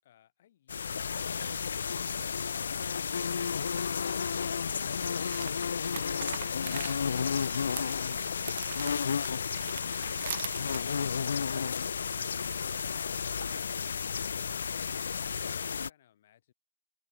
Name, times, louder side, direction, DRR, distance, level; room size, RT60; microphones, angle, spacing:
sound 1, 0.7-15.9, left 6 dB, 75° left, 0.4 m, -32 dB
sound 2, 2.1-2.2 4.8-10.8, right 11 dB, 50° right, 0.7 m, -43 dB
voice 1, 14.9-16.5, left 11 dB, 45° left, 7.8 m, -65 dB
open air
hypercardioid pair, 155°, 0 cm